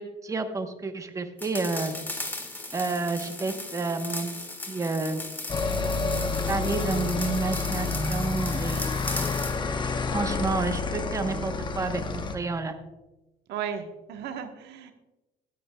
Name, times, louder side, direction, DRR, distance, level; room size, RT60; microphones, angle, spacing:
voice 1, 0.0-2.0 2.7-4.4 4.7-5.2 6.5-9.0 10.1-12.8, right 3 dB, 20° right, 7 dB, 0.9 m, -30 dB
sound 1, 1.4-9.6, left 2 dB, 10° left, 1.4 m, -37 dB
sound 2, 5.5-12.4, left 4 dB, 25° left, 0.9 m, -29 dB
voice 2, 13.5-14.9, right 8 dB, 80° right, 6 dB, 1.1 m, -35 dB
15.5 x 10.5 x 2.2 m, 1.0 s
cardioid pair, 110°, 17 cm